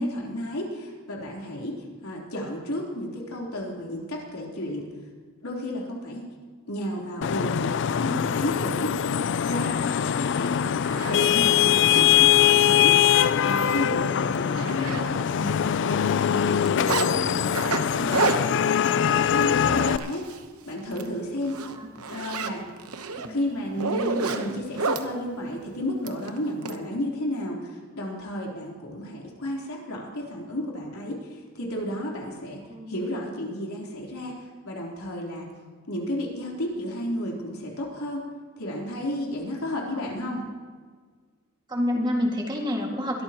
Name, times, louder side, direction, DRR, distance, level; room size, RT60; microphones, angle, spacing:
voice 1, 0.0-4.9 5.4-6.2 6.7-9.0 9.4-10.6 11.1-13.1 13.4-18.7 19.2-20.3 20.6-21.6 22.1-22.6 23.3-32.6 32.9-34.3 34.6-35.5 35.9-38.3 38.6-40.4, left 1 dB, 85° left, -2 dB, 3.5 m, -32 dB
Vehicle horn car horn honking / Traffic noise roadway noise, 7.2-20.0, left 9 dB, 55° left, 0.3 m, -22 dB
Zipper (clothing), 10.2-10.3 10.8-12.1 12.7-12.8 13.2-13.3 13.6-13.8 14.1-15.4 15.7-17.1 17.5-20.5 20.8-21.1 21.4-25.1 26.0-26.8, right 4 dB, 90° right, 1.0 m, -30 dB
voice 2, 41.7-43.2, left 1 dB, 20° right, 0 dB, 2.0 m, -28 dB
22.0 x 13.5 x 3.0 m, 1.5 s
head